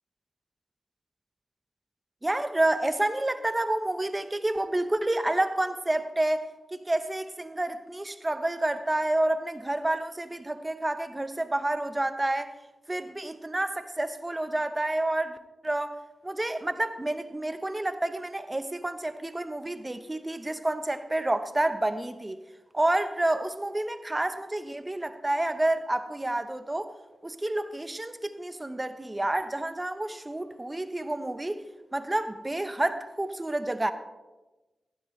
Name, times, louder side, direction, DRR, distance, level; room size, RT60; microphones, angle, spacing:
voice 1, 2.2-12.5 12.9-15.4 15.6-16.0 16.2-22.4 22.7-26.9 27.2-31.6 31.9-33.9, right 1 dB, 20° right, 10 dB, 1.1 m, -29 dB
15.5 x 14.0 x 3.3 m, 1.1 s
cardioid pair, 55°, 0 cm